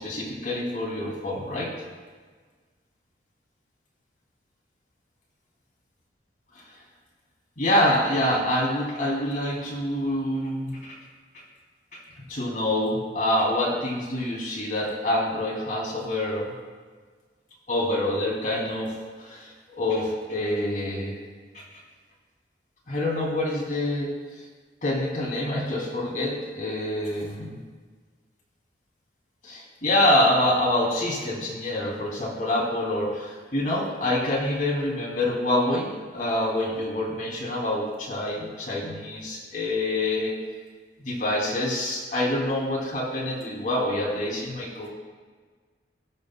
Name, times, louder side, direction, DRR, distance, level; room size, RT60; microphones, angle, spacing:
voice 1, 0.0-1.7 7.6-11.0 12.3-16.5 17.7-19.5 19.8-21.2 21.5-21.6 22.9-24.1 24.8-27.6 29.4-40.3 41.0-44.9, left 1 dB, 45° left, -4 dB, 2.7 m, -26 dB
20.0 x 6.8 x 2.3 m, 1.5 s
head